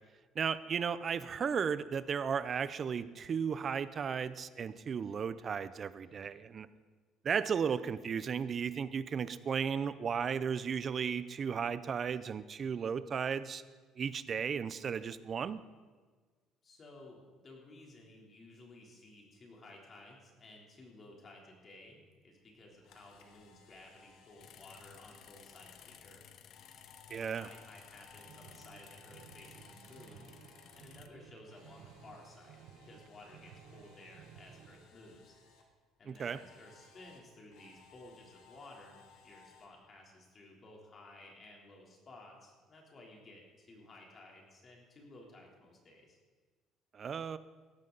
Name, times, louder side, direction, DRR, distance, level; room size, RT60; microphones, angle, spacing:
voice 1, 0.4-6.7 7.2-13.6 14.0-15.6 27.1-27.5 36.1-36.4 46.9-47.4, right 6 dB, 35° right, 15 dB, 0.6 m, -35 dB
voice 2, 16.6-26.2 27.1-30.3 30.7-35.3 36.0-46.2, left 2 dB, 35° left, -1 dB, 3.4 m, -55 dB
Camera, 22.5-30.8 31.1-35.6 36.1-39.7, left 5 dB, 75° left, 2.2 m, -62 dB
sound 1, 24.4-31.1, left 9 dB, 55° left, 0.8 m, -57 dB
sound 2, 28.1-34.9, right 8 dB, 70° right, 1.1 m, -57 dB
16.5 x 13.0 x 4.0 m, 1.4 s
cardioid pair, 125°, 0 cm